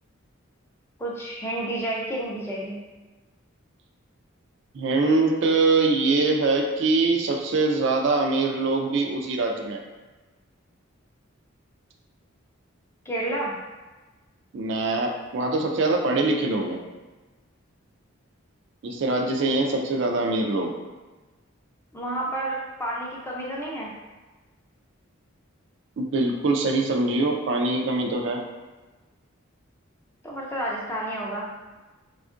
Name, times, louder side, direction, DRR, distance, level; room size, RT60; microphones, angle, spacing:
voice 1, 1.0-2.8 13.1-13.5 21.9-23.9 30.2-31.5, right 1 dB, 10° left, -4 dB, 0.4 m, -30 dB
voice 2, 4.7-9.8 14.5-16.8 18.8-20.7 26.0-28.4, right 3 dB, 60° right, 2 dB, 0.3 m, -23 dB
3.5 x 2.3 x 2.4 m, 1.2 s
head